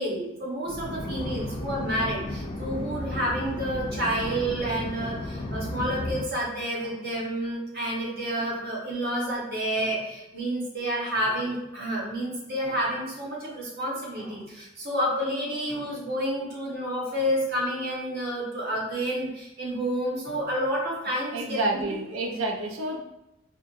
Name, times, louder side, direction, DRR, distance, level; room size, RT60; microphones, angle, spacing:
voice 1, 0.0-21.9, equal, 50° right, -4 dB, 1.1 m, -29 dB
sound 1, 0.7-6.2, left 1 dB, 30° left, 0.3 m, -34 dB
voice 2, 21.3-23.0, right 2 dB, 75° right, 1 dB, 0.6 m, -29 dB
4.4 x 2.4 x 2.5 m, 0.92 s
head